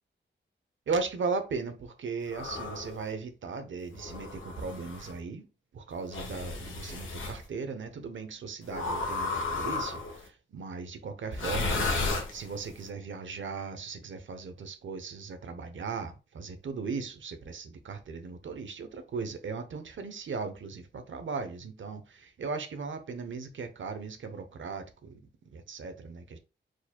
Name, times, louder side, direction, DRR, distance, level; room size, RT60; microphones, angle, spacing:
voice 1, 0.9-5.5 5.7-25.2 25.5-26.4, right 4 dB, 80° right, 0.8 m, -37 dB
sound 1, 2.3-3.0 3.9-5.1 6.1-7.4 8.7-10.2 11.3-12.7, left 3 dB, 90° left, 1.4 m, -33 dB
4.8 x 4.3 x 2.2 m
wide cardioid pair, 140°, 20 cm